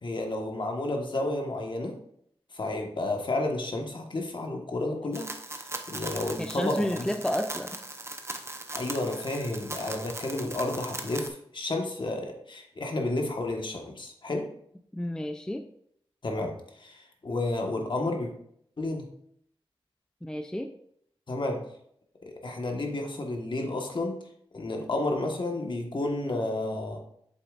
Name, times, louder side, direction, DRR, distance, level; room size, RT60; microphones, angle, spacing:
voice 1, 0.0-1.9 2.5-5.3 5.9-7.0 8.7-14.5 16.2-18.3 18.8-19.0 21.3-21.6 22.2-24.2 24.5-27.0, left 2 dB, 55° left, 2 dB, 1.3 m, -31 dB
sound 1, 5.1-11.3, right 2 dB, 25° right, 0.7 m, -39 dB
voice 2, 6.4-7.8 14.9-15.7 20.2-20.7, left 1 dB, 5° left, 6 dB, 0.4 m, -31 dB
8.3 x 7.1 x 2.5 m, 0.69 s
wide cardioid pair, 105°, 10 cm